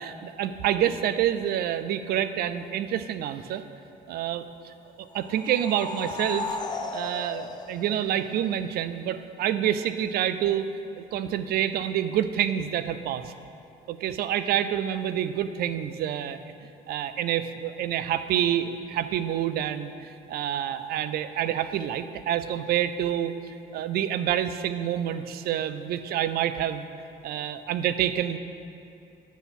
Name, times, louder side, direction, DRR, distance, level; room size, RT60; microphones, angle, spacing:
voice 1, 0.0-3.6 4.1-6.6 6.9-10.6 11.0-13.3 13.9-16.5 16.9-26.9 27.2-28.4, right 10 dB, 65° right, 12 dB, 0.5 m, -28 dB
sound 1, 5.1-8.7, left 3 dB, 25° left, 0.6 m, -35 dB
9.2 x 6.8 x 4.2 m, 2.6 s
cardioid pair, 110°, 17 cm